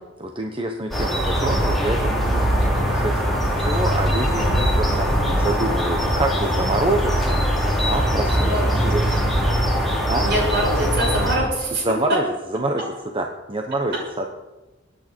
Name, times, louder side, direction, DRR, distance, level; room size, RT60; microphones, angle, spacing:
voice 1, 0.2-7.4 7.9-9.1 10.1-10.2 11.8-12.3 12.5-12.8 13.1-14.3, right 2 dB, 25° right, 3 dB, 1.1 m, -26 dB
sound 1, 0.9-11.4, equal, ahead, 3.7 m, -21 dB
voice 2, 2.6-2.9 5.3-5.5 8.4-8.7 9.1-9.2 10.2-11.8 12.1-12.2, right 1 dB, 60° right, -3 dB, 6.9 m, -25 dB
25.0 x 9.3 x 4.6 m, 1.1 s
head